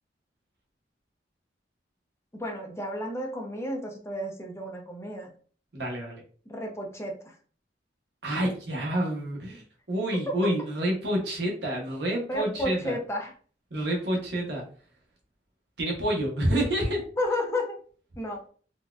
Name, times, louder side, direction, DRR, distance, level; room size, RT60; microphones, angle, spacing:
voice 1, 2.3-5.3 6.5-7.3 10.3-10.4 12.3-13.3 17.2-17.8 18.2-18.4, left 1 dB, 15° left, 1 dB, 0.5 m, -32 dB
voice 2, 5.7-6.2 8.2-9.6 9.9-13.0 13.7-14.6 15.8-17.0, right 1 dB, 65° right, -1 dB, 0.9 m, -28 dB
3.9 x 2.2 x 2.3 m, 0.43 s
head